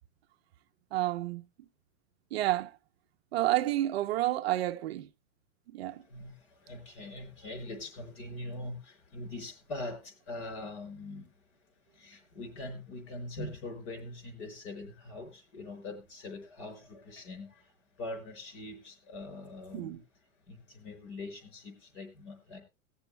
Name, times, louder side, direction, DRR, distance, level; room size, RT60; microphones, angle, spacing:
voice 1, 0.9-1.5 2.3-2.7 3.3-5.1 5.7-6.0 19.7-20.0, right 15 dB, 50° right, 0.5 m, -30 dB
voice 2, 5.8-22.6, left 2 dB, 60° left, 5.3 m, -43 dB
20.0 x 7.0 x 3.2 m
supercardioid pair, 160°, 40 cm